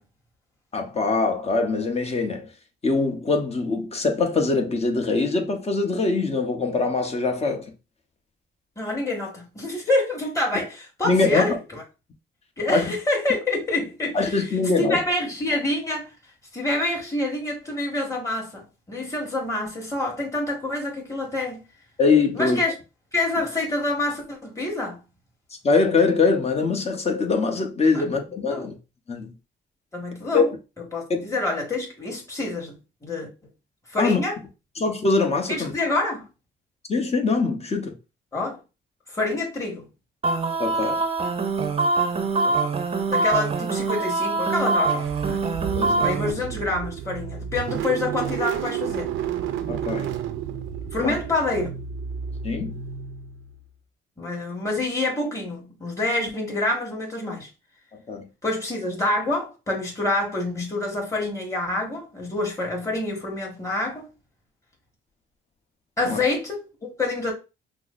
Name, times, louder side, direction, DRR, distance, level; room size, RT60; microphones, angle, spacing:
voice 1, 0.7-2.5 2.8-7.7 11.0-11.6 12.7-12.9 14.1-15.0 22.0-22.6 25.6-28.7 29.1-29.3 30.3-30.4 31.1-31.2 34.0-34.2 34.8-35.7 36.9-38.0 40.6-41.0 45.8-46.1 49.7-50.1 51.0-51.2 52.4-52.7 58.1-58.3 66.0-66.2, left 4 dB, 30° left, 0.9 m, -23 dB
voice 2, 8.8-11.8 12.6-14.5 14.8-16.1 16.5-21.7 22.3-22.7 23.1-25.0 27.9-28.0 28.5-28.7 29.9-30.5 30.9-33.3 33.9-34.4 35.5-36.3 38.3-38.6 39.1-39.8 42.4-42.6 43.1-45.5 46.0-49.1 50.9-51.8 54.2-57.5 58.4-64.1 66.0-67.3, left 2 dB, 15° left, 1.6 m, -27 dB
sound 1, 40.2-46.3, right 3 dB, 30° right, 0.6 m, -24 dB
Car / Engine starting, 44.9-53.6, right 9 dB, 90° right, 0.5 m, -31 dB
5.7 x 2.0 x 2.5 m
cardioid pair, 90°, 20 cm